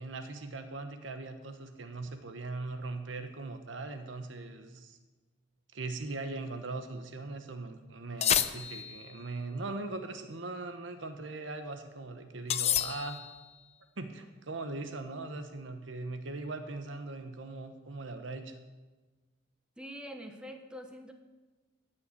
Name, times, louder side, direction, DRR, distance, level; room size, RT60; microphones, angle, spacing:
voice 1, 0.0-5.0 5.7-13.2 14.0-18.5, right 3 dB, 70° right, 8 dB, 1.0 m, -40 dB
sound 1, 8.2-9.1 12.5-13.4, left 10 dB, 35° left, 0.5 m, -29 dB
voice 2, 19.8-21.1, equal, 5° right, 5 dB, 0.8 m, -44 dB
14.5 x 5.7 x 8.5 m, 1.3 s
head